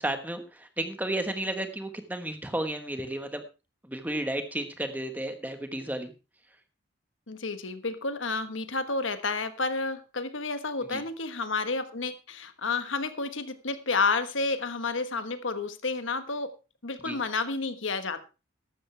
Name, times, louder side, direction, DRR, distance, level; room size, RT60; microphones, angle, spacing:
voice 1, 0.0-3.4 3.8-6.1 10.9-11.0 17.0-17.2, right 1 dB, 10° right, 7 dB, 1.3 m, -33 dB
voice 2, 7.3-16.5 16.8-18.2, left 3 dB, 80° left, 10 dB, 1.3 m, -30 dB
14.0 x 12.0 x 3.4 m, 0.30 s
head